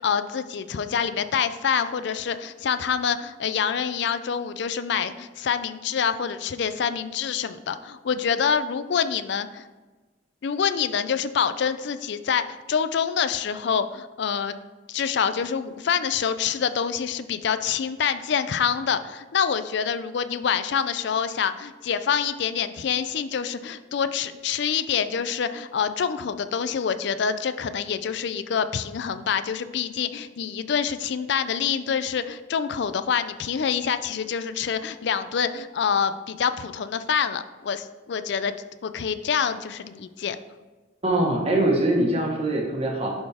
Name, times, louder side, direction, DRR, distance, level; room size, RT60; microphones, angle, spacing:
voice 1, 0.0-9.6 10.4-14.6 14.9-38.6 38.8-40.4, left 7 dB, 65° left, 12 dB, 0.4 m, -26 dB
voice 2, 41.0-43.1, right 1 dB, 35° right, 0 dB, 1.3 m, -23 dB
11.0 x 4.1 x 3.5 m, 1.3 s
head